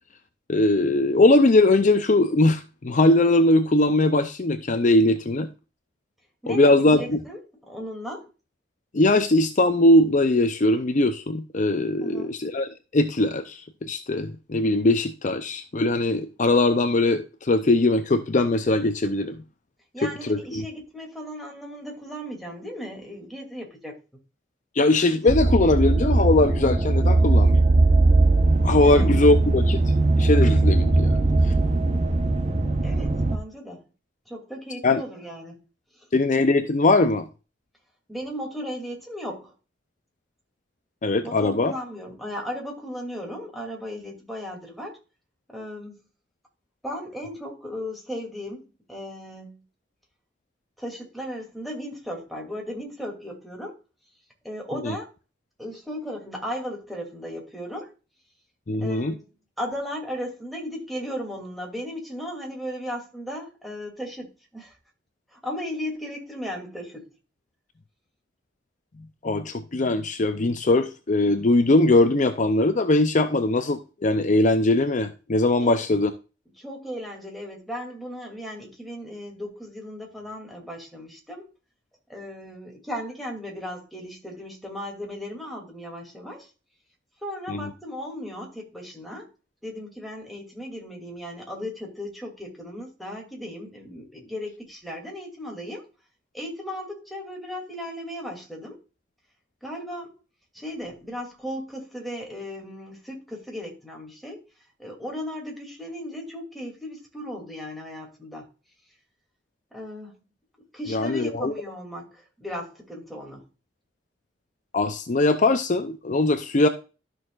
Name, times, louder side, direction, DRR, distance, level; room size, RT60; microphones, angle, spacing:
voice 1, 0.5-5.5 6.5-7.2 8.9-19.4 20.0-20.6 24.7-27.6 28.6-29.8 30.2-31.5 34.8-35.0 36.1-37.3 41.0-41.7 54.8-55.0 58.7-59.2 69.0-76.1 87.5-87.7 110.9-111.5 114.7-116.7, left 2 dB, 45° left, 0.6 m, -21 dB
voice 2, 6.4-7.4 7.7-8.3 12.0-12.3 19.9-23.9 28.8-29.1 32.8-33.8 34.3-35.6 35.9-36.1 38.1-39.5 41.2-45.0 45.5-46.0 46.8-49.6 50.8-53.7 54.4-55.1 55.6-57.9 58.8-59.2 59.6-64.8 65.3-67.1 75.6-75.8 76.6-81.5 82.1-86.5 87.2-89.3 89.6-95.9 96.3-98.8 99.6-100.1 100.5-104.4 104.8-108.5 109.7-110.2 110.7-113.5, equal, ahead, 2.7 m, -36 dB
sound 1, 25.3-33.4, right 2 dB, 40° right, 0.9 m, -20 dB
12.5 x 6.4 x 2.5 m
head